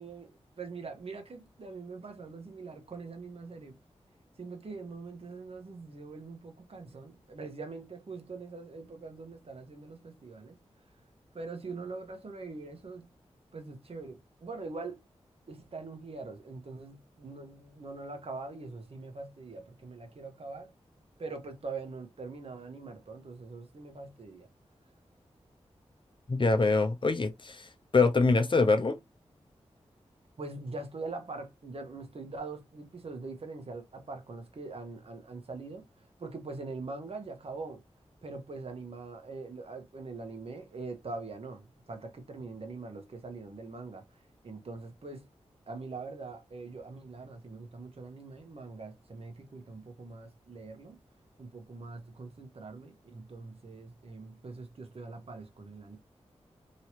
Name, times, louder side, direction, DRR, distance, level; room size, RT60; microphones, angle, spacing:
voice 1, 0.0-3.8 4.4-10.6 11.3-13.1 13.5-15.0 15.5-20.7 21.2-24.5 30.4-35.8 36.2-37.8 38.2-44.0 44.4-45.3 45.7-51.0 51.4-56.0, right 3 dB, 55° right, 1.2 m, -43 dB
voice 2, 26.3-29.0, left 3 dB, 45° left, 0.7 m, -25 dB
3.1 x 2.8 x 3.0 m
cardioid pair, 50°, 12 cm